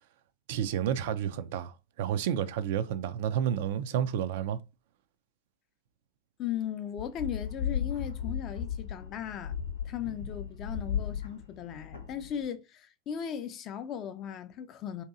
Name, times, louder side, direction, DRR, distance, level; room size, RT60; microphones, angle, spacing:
voice 1, 0.5-4.6, right 9 dB, 60° right, 0.3 m, -30 dB
voice 2, 6.4-9.5 9.8-15.0, left 9 dB, 40° left, 0.4 m, -37 dB
sound 1, 7.0-12.5, left 8 dB, 80° left, 0.7 m, -35 dB
2.7 x 2.6 x 2.4 m
figure-of-eight pair, 90°, 0 cm